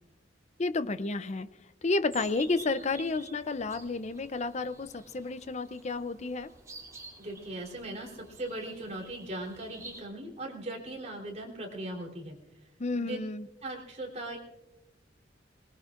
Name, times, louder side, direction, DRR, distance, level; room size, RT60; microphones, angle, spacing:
voice 1, 0.6-1.5 1.8-6.5 12.8-13.5, left 3 dB, 35° left, 13 dB, 0.6 m, -31 dB
sound 1, 2.1-10.0, right 3 dB, 20° right, 2.9 m, -50 dB
voice 2, 7.2-12.4 12.9-13.2 13.6-14.4, right 1 dB, 35° right, -2 dB, 3.4 m, -39 dB
23.5 x 19.5 x 2.5 m, 1.0 s
head